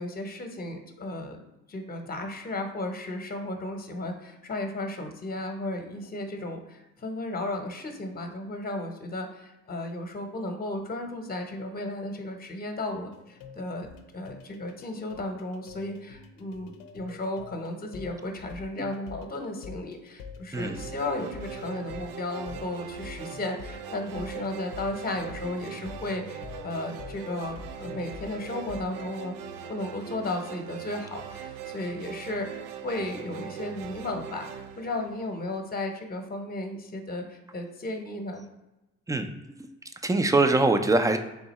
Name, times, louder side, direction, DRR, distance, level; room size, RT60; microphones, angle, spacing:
voice 1, 0.0-1.4 1.7-13.9 14.1-29.4 29.6-38.4, left 2 dB, 25° left, 4 dB, 0.9 m, -34 dB
sound 1, 13.1-28.9, left 6 dB, 80° left, 0.6 m, -46 dB
sound 2, 20.5-35.8, right 8 dB, 75° right, 0.5 m, -41 dB
voice 2, 40.0-41.2, right 2 dB, 10° right, 7 dB, 0.5 m, -23 dB
3.6 x 2.7 x 4.1 m, 0.97 s
supercardioid pair, 60°, 33 cm